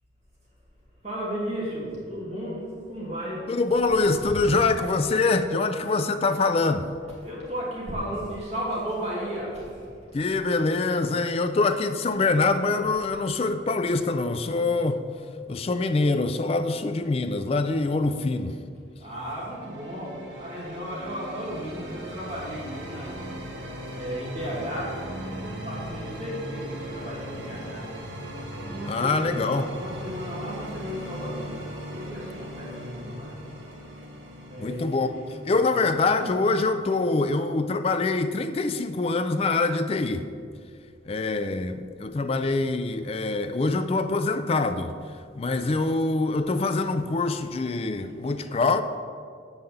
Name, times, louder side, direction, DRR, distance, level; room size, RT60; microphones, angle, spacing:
voice 1, 1.0-3.5 4.3-4.4 7.0-10.2 18.5-18.6 19.0-25.0 25.4-28.3 28.6-33.4 34.5-36.2 42.2-42.6 48.2-48.3, equal, 35° right, -6 dB, 2.2 m, -35 dB
voice 2, 3.5-6.9 10.1-15.0 15.5-18.5 28.9-29.7 34.6-35.1 35.5-40.2 41.1-44.9 45.3-48.8, left 3 dB, 30° left, 9 dB, 0.3 m, -24 dB
sound 1, 19.1-36.9, equal, 70° right, 1.4 m, -38 dB
7.9 x 5.6 x 7.0 m, 2.2 s
head